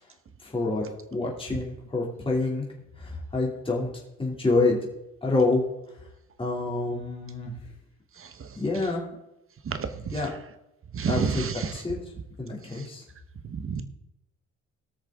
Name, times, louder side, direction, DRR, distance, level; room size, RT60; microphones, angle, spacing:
voice 1, 0.4-0.8 1.1-2.7 3.0-3.9 4.2-4.8 5.2-5.6 6.4-7.5 8.5-9.0 10.1-10.3 11.0-12.0 12.4-13.0, left 3 dB, 15° left, -3 dB, 3.1 m, -27 dB
voice 2, 10.9-11.5 13.5-13.8, right 6 dB, 45° right, 10 dB, 1.3 m, -28 dB
18.0 x 6.6 x 3.8 m, 0.86 s
cardioid pair, 90°, 30 cm